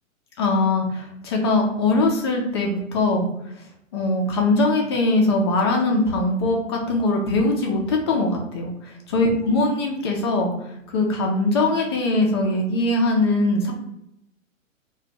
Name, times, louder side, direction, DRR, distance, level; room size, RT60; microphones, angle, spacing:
voice 1, 0.4-3.3 3.9-10.5 10.9-13.7, left 2 dB, 20° left, 0 dB, 0.3 m, -21 dB
2.9 x 2.2 x 4.2 m, 0.79 s
hypercardioid pair, 125°, 40 cm